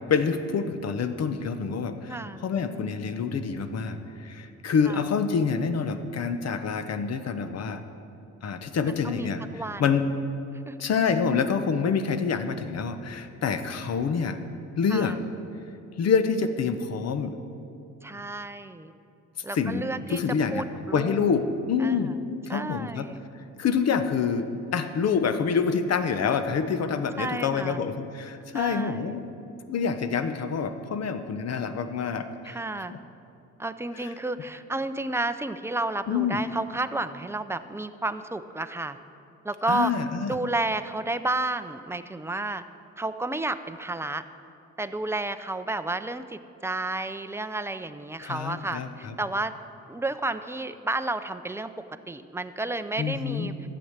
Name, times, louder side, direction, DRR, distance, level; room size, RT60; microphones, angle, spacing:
voice 1, 0.1-7.8 8.4-10.1 10.8-14.4 14.8-15.1 16.0-17.4 19.5-19.8 20.1-20.6 20.9-22.1 22.5-23.1 23.6-29.2 29.7-32.6 32.9-33.0 36.1-36.4 39.7-40.3 48.2-49.1 53.0-53.5, left 6 dB, 55° left, 9 dB, 1.0 m, -27 dB
voice 2, 2.1-2.4 4.9-5.0 9.0-9.3 9.5-9.9 10.7-10.8 14.9-15.2 18.0-18.9 19.4-20.2 20.5-21.4 21.8-22.1 22.5-23.2 27.2-27.8 28.5-29.2 32.4-32.9 33.6-39.0 39.4-39.9 40.3-42.6 43.0-44.2 44.8-49.5 49.9-53.5, right 2 dB, 10° right, 10 dB, 0.6 m, -31 dB
12.5 x 8.2 x 8.1 m, 2.8 s
cardioid pair, 90°, 30 cm